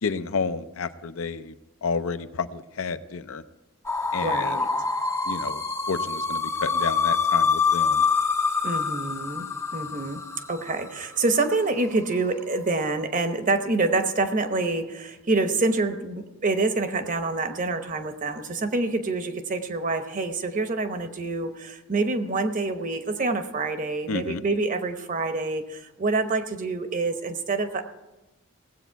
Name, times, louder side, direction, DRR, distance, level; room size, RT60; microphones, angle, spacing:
voice 1, 0.0-1.5 1.8-3.4 4.1-4.6 5.3-5.6 5.9-8.0 24.1-24.4, left 5 dB, 70° left, 11 dB, 0.6 m, -30 dB
sound 1, 3.9-10.8, left 5 dB, 10° left, 0.5 m, -25 dB
voice 2, 4.2-4.7 8.6-9.5 9.7-10.2 10.5-27.8, right 3 dB, 40° right, 8 dB, 0.9 m, -26 dB
18.0 x 8.1 x 4.6 m, 1.0 s
head